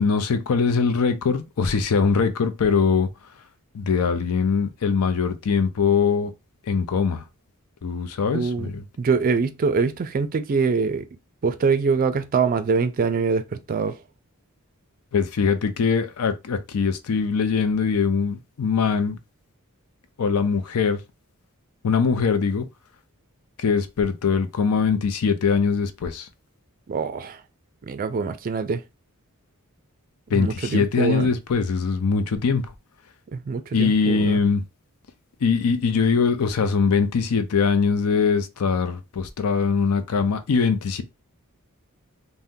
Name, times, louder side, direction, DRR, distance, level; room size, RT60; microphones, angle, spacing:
voice 1, 0.0-3.1 3.7-6.3 6.7-7.2 7.8-8.8 15.1-19.2 20.2-21.0 21.8-22.7 23.6-26.3 30.3-32.6 33.7-34.6 35.4-41.0, left 5 dB, 85° left, 0.5 m, -22 dB
voice 2, 8.3-8.7 9.0-11.1 11.4-14.0 26.9-27.4 27.9-28.8 30.3-31.3 33.3-34.4, right 5 dB, 40° right, 0.3 m, -24 dB
2.7 x 2.1 x 3.5 m
head